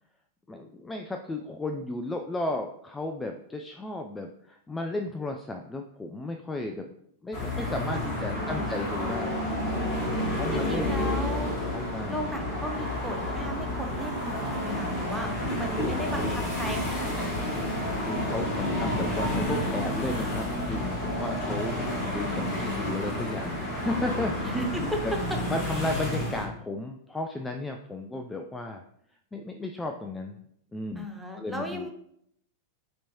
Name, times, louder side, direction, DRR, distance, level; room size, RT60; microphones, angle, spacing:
voice 1, 0.5-6.9 7.2-9.7 10.3-11.1 11.7-12.3 18.0-24.5 24.8-25.1 25.5-28.8 29.3-30.4 30.7-31.1 31.4-31.9, left 2 dB, 10° left, 4 dB, 0.3 m, -34 dB
sound 1, 7.3-26.4, left 1 dB, 30° left, 1.4 m, -30 dB
voice 2, 8.0-8.7 10.5-11.5 12.1-17.5 24.4-25.0 25.3-25.4 30.9-31.9, equal, 5° right, 3 dB, 0.7 m, -36 dB
6.0 x 3.0 x 2.8 m, 0.72 s
figure-of-eight pair, 95°, 0 cm